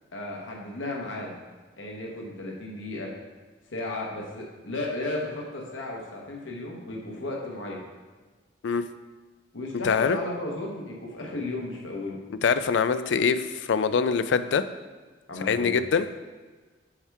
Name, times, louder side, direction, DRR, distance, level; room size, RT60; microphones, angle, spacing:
voice 1, 0.1-1.3 1.8-3.1 3.7-7.8 9.5-12.2 15.3-15.7, left 2 dB, 80° left, -1 dB, 1.1 m, -34 dB
voice 2, 9.8-10.2 12.4-14.6 15.4-16.0, left 6 dB, 65° left, 12 dB, 0.3 m, -24 dB
7.1 x 3.5 x 4.7 m, 1.3 s
head